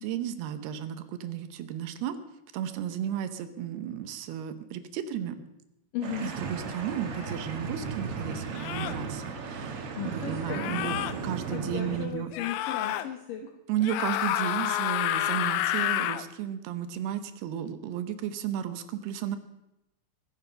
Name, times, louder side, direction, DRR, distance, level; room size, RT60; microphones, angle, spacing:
voice 1, 0.0-2.2 2.5-5.4 6.2-12.3 13.7-19.4, right 10 dB, 90° right, 10 dB, 3.1 m, -34 dB
voice 2, 5.9-6.3 10.0-11.0 11.5-13.4, left 8 dB, 65° left, 3 dB, 2.7 m, -36 dB
sound 1, 6.0-12.1, right 4 dB, 50° right, 2.0 m, -36 dB
sound 2, 7.2-7.3 8.6-9.0 10.5-11.1 12.3-13.1 13.8-16.2, left 13 dB, 90° left, 2.7 m, -29 dB
22.0 x 10.5 x 5.8 m, 0.92 s
omnidirectional pair, 4.4 m